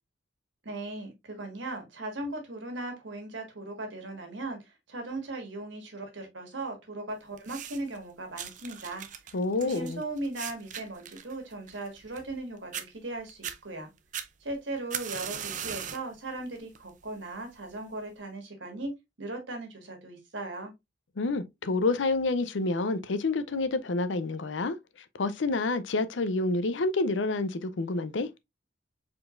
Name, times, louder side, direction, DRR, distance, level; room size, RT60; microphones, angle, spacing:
voice 1, 0.6-13.9 14.4-18.9 19.2-20.7, right 2 dB, 80° right, 1.6 m, -38 dB
sound 1, 7.4-8.0 8.4-12.4 12.7-12.9 13.3-13.6 14.1-16.1 16.6-16.9 17.7-17.8, right 9 dB, 45° right, 0.5 m, -39 dB
voice 2, 9.3-10.0 21.2-24.8 25.2-28.3, left 3 dB, 80° left, 0.6 m, -28 dB
4.7 x 3.8 x 2.4 m
head